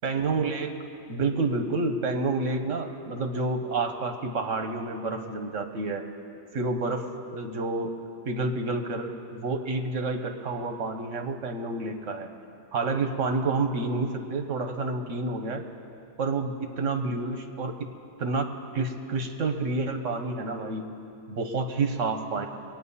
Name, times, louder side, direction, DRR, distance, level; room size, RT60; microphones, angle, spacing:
voice 1, 0.0-0.7 1.1-6.0 6.5-7.0 7.3-7.9 8.2-12.3 12.7-15.6 16.2-17.7 18.2-20.9 21.3-22.5, right 3 dB, 75° right, 5 dB, 1.4 m, -29 dB
22.5 x 9.3 x 5.6 m, 2.6 s
omnidirectional pair, 1.3 m